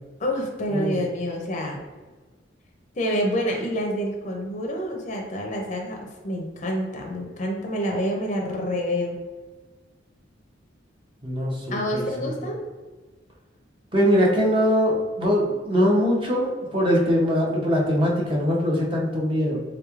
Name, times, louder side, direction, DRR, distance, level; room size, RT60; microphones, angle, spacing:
voice 1, 0.2-1.8 3.0-6.0 6.2-9.2 11.7-12.6, equal, 40° left, 1 dB, 0.5 m, -27 dB
voice 2, 11.2-12.3 13.9-19.6, equal, 25° right, -2 dB, 0.6 m, -22 dB
3.4 x 3.0 x 2.4 m, 1.3 s
head